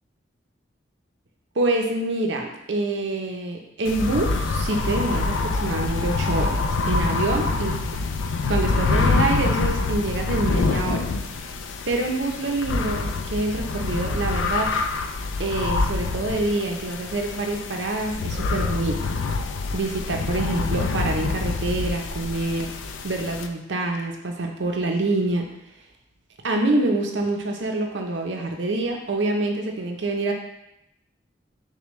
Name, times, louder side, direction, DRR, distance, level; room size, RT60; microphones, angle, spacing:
voice 1, 1.6-6.6 6.9-7.8 8.5-11.0 11.9-14.7 15.4-19.0 19.7-22.7 23.0-25.5 26.4-30.3, right 2 dB, 70° right, 2 dB, 0.6 m, -26 dB
sound 1, 3.8-23.5, left 3 dB, 80° left, 0.3 m, -26 dB
6.6 x 2.2 x 3.1 m, 0.85 s
head